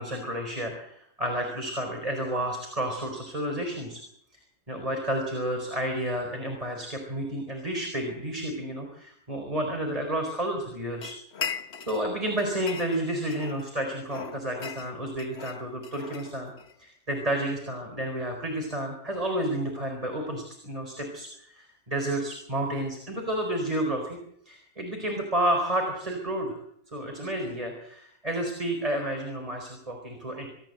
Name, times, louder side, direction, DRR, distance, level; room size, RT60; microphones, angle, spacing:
voice 1, 0.0-4.0 4.7-11.1 11.9-16.5 16.8-24.2 24.4-26.6 26.9-30.5, right 1 dB, 25° right, 2 dB, 4.8 m, -31 dB
sound 1, 11.0-12.1 12.4-13.7 14.1-16.8, left 6 dB, 55° left, 1.6 m, -38 dB
27.0 x 13.5 x 8.1 m, 0.72 s
omnidirectional pair, 1.3 m